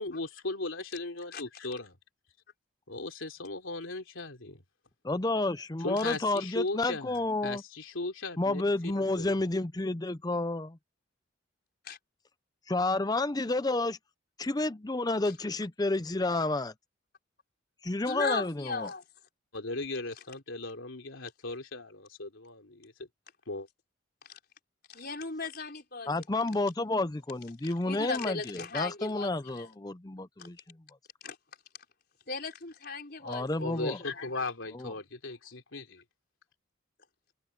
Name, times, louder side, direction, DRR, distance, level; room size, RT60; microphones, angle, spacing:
voice 1, 0.0-2.0 2.9-4.6 5.8-9.4 19.5-23.1 23.5-23.7 33.6-36.0, left 2 dB, 80° left, 3.1 m, -37 dB
voice 2, 5.0-7.6 8.4-10.8 12.7-14.0 14.4-16.7 17.8-18.9 26.1-30.6 33.2-34.0 34.7-34.9, left 2 dB, 20° left, 0.5 m, -30 dB
voice 3, 18.1-19.0 24.2-24.4 24.9-26.1 27.6-29.7 30.4-30.5 31.2-31.4 32.3-34.1, left 4 dB, 50° left, 5.2 m, -37 dB
head